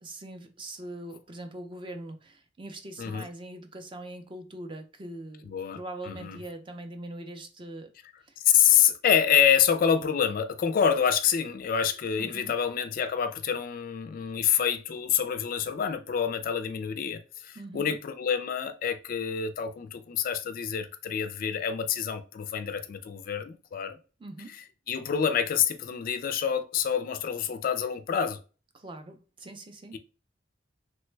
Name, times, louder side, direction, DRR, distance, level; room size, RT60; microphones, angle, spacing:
voice 1, 0.0-7.9 8.3-8.4 12.2-12.5 17.6-18.0 24.2-24.6 28.7-30.0, right 1 dB, 25° right, 0.5 m, -42 dB
voice 2, 5.5-5.8 6.0-6.4 8.4-24.0 24.9-28.4, left 8 dB, 45° left, 0.3 m, -27 dB
3.1 x 2.2 x 3.1 m
head